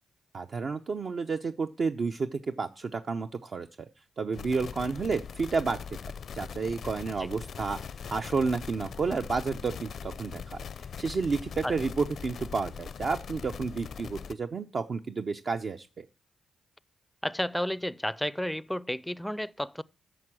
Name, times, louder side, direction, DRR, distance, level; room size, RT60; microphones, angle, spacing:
voice 1, 0.3-3.7 4.2-6.0 6.3-7.8 8.1-10.4 11.0-16.0, right 4 dB, 55° right, 0.6 m, -31 dB
sound 1, 4.3-14.3, left 7 dB, 65° left, 0.5 m, -41 dB
voice 2, 17.2-19.8, equal, 5° left, 0.4 m, -32 dB
9.3 x 6.2 x 7.5 m
cardioid pair, 60°, 0 cm